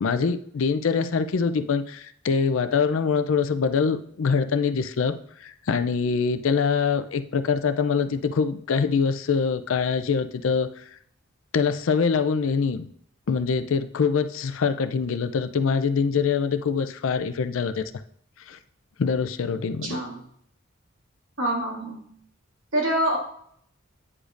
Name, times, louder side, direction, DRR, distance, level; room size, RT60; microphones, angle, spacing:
voice 1, 0.0-5.1 5.4-10.8 11.5-12.9 13.3-17.8 18.5-18.6 19.0-20.0, left 5 dB, 70° left, 10 dB, 0.4 m, -24 dB
voice 2, 19.8-20.2 21.4-22.1 22.7-23.2, right 1 dB, 70° right, -1 dB, 2.0 m, -26 dB
9.7 x 5.0 x 2.5 m, 0.66 s
head